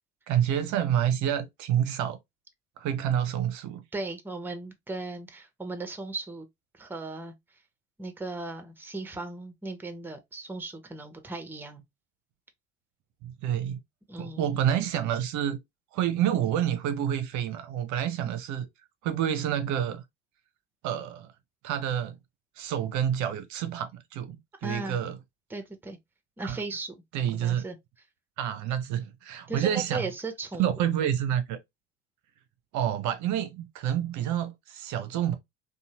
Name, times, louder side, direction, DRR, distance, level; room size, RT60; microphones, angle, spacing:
voice 1, 0.3-2.2 2.8-3.8 13.2-13.8 14.2-15.6 15.9-18.7 19.0-20.0 20.8-21.3 21.6-22.2 22.6-25.2 26.4-26.6 27.1-27.6 28.4-30.1 30.6-31.6 32.7-35.3, right 10 dB, 50° right, 0.5 m, -28 dB
voice 2, 3.9-6.5 6.7-7.3 8.0-11.8 14.1-14.5 24.6-25.0 25.5-26.0 26.4-27.0 27.3-27.8 29.5-30.9, right 3 dB, 5° right, 0.6 m, -37 dB
2.6 x 2.1 x 2.7 m
hypercardioid pair, 60°, 36 cm